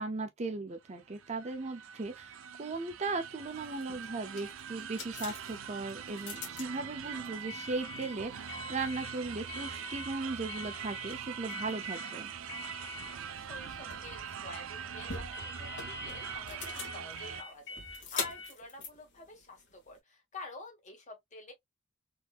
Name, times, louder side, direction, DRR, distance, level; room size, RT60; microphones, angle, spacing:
voice 1, 0.0-12.3, right 3 dB, 35° right, 0.5 m, -37 dB
sound 1, 0.9-17.4, right 7 dB, 85° right, 0.6 m, -43 dB
sound 2, 3.5-20.0, left 4 dB, 60° left, 1.4 m, -45 dB
voice 2, 13.3-21.5, left 3 dB, 35° left, 1.5 m, -48 dB
3.8 x 2.7 x 2.4 m
head